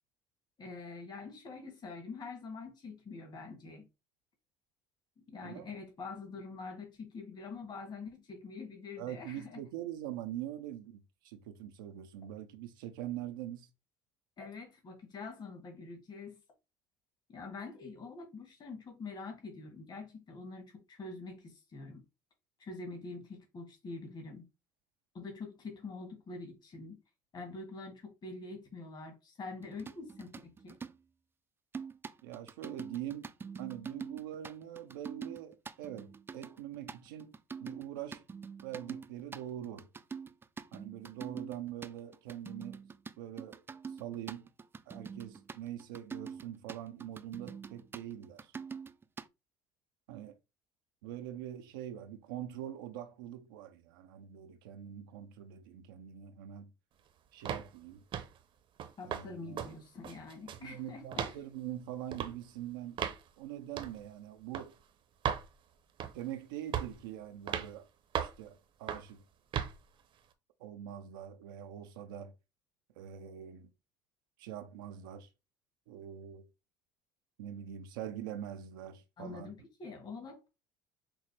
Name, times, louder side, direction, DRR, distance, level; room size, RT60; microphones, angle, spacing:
voice 1, 0.6-3.9 5.3-9.6 14.4-16.4 17.3-22.0 22.6-24.5 25.1-27.0 27.3-30.8 59.0-61.4 79.2-80.5, left 3 dB, 40° left, 1.7 m, -45 dB
voice 2, 9.0-13.7 32.2-33.3 33.6-38.2 38.6-39.9 40.7-42.8 43.2-43.6 43.9-44.5 44.9-48.5 50.1-50.4 51.0-56.7 57.3-58.0 59.0-59.6 60.6-63.1 63.4-64.7 66.1-67.9 68.2-69.2 70.6-72.3 73.0-73.7 74.4-75.3 75.9-76.4 77.4-79.5, right 11 dB, 85° right, 0.5 m, -43 dB
sound 1, 29.6-31.0 31.7-49.3, right 6 dB, 20° right, 0.4 m, -45 dB
sound 2, 57.5-57.7 58.1-58.4 58.8-59.3 59.6-59.7 60.0-60.7 61.1-61.4 62.1-62.3 63.0-63.2 63.8-64.0 64.5-64.7 65.2-65.5 66.0-66.3 66.7-67.0 67.5-67.7 68.1-68.4 68.9-69.1 69.5-69.7, right 9 dB, 50° right, 0.7 m, -36 dB
6.0 x 2.0 x 3.1 m
supercardioid pair, 80°, 11 cm